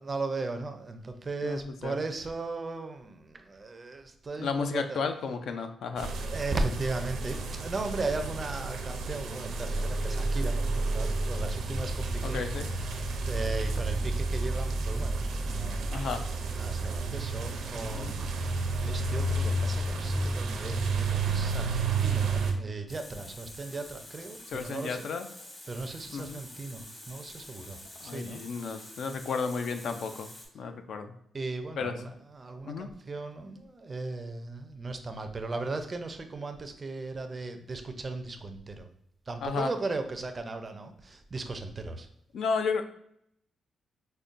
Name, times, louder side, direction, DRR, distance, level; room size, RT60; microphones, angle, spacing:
voice 1, 0.0-5.0 6.0-16.0 16.6-25.1 25.7-28.4 31.3-38.9 39.3-42.1, right 3 dB, 30° right, 7 dB, 0.4 m, -37 dB
voice 2, 1.4-2.0 4.4-6.1 12.2-12.7 15.9-16.2 17.9-18.2 24.5-25.3 26.1-26.4 28.0-30.3 30.5-31.1 31.8-31.9 32.7-32.9 39.4-39.7 42.3-42.8, left 5 dB, 70° left, 7 dB, 0.4 m, -33 dB
sound 1, 6.0-22.5, right 3 dB, 85° right, 0.5 m, -31 dB
Water tap faucet, 22.9-30.5, left 1 dB, 30° left, 1.0 m, -47 dB
5.1 x 2.2 x 2.5 m, 0.71 s
cardioid pair, 120°, 0 cm